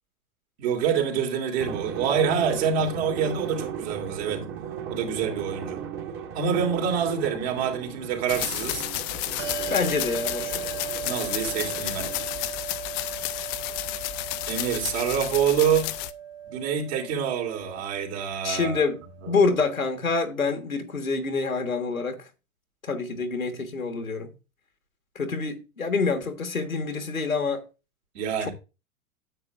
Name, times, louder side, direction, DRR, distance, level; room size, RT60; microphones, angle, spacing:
voice 1, 0.6-4.4 4.9-5.8 6.3-8.9 11.0-12.1 14.5-15.9 16.5-18.8 19.2-19.4 28.1-28.5, right 7 dB, 50° right, 2.9 m, -26 dB
Drum, 1.6-12.6, right 8 dB, 30° right, 1.7 m, -37 dB
sound 1, 8.3-16.1, left 16 dB, 30° left, 0.5 m, -32 dB
Bell, 9.4-19.4, right 8 dB, 65° right, 2.5 m, -38 dB
voice 2, 9.7-10.7 18.4-19.0 19.3-22.3 22.8-24.3 25.1-27.6, left 4 dB, 90° left, 1.5 m, -26 dB
9.8 x 7.9 x 2.4 m
figure-of-eight pair, 100°, 40 cm